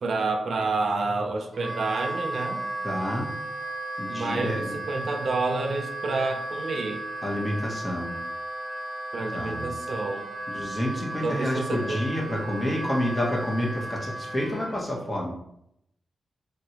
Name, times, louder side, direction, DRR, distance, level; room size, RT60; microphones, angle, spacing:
voice 1, 0.0-2.6 4.1-7.1 9.1-10.3 11.2-12.0, right 3 dB, 65° right, 4 dB, 0.4 m, -29 dB
Wind instrument woodwind instrument, 1.5-14.7, right 1 dB, 35° right, 0.9 m, -35 dB
voice 2, 2.8-3.3 4.0-4.8 7.2-8.1 9.3-9.6 10.5-15.3, equal, 20° left, -3 dB, 0.9 m, -29 dB
2.9 x 2.8 x 2.8 m, 0.76 s
wide cardioid pair, 120°, 0 cm